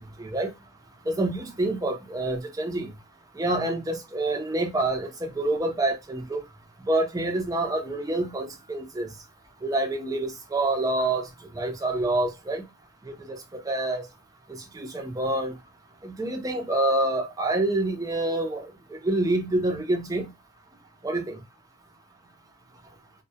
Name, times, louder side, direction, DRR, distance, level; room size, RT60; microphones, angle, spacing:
voice 1, 1.1-2.9 3.4-6.4 6.9-9.1 9.6-11.3 11.6-12.6 13.7-14.0 14.7-15.5 16.0-18.7 19.0-20.3 21.0-21.4, right 2 dB, 15° right, 0.4 m, -27 dB
2.1 x 2.1 x 2.7 m
head